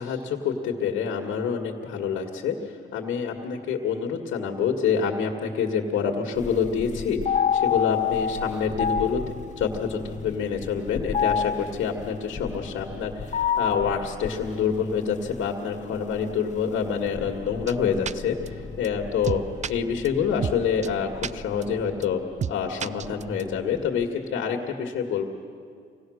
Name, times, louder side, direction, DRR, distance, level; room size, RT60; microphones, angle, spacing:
voice 1, 0.0-7.3 7.6-9.2 9.6-19.4 19.7-22.2 22.5-25.2, left 6 dB, 80° left, 2 dB, 1.8 m, -27 dB
sound 1, 6.4-24.1, left 7 dB, 35° left, 1.0 m, -31 dB
Breathing / Train, 16.6-22.1, equal, 20° right, 3.0 m, -46 dB
sound 2, 17.7-17.8 18.1-18.2 18.5-18.6 18.8-18.9 19.2-19.7 20.0-20.1 20.4-20.6 20.8-20.9 21.2-21.3 21.6-21.7 22.0-22.1 22.4-22.5 22.8-23.4, right 7 dB, 35° right, 0.4 m, -29 dB
25.5 x 18.0 x 6.4 m, 2.2 s
cardioid pair, 90°, 20 cm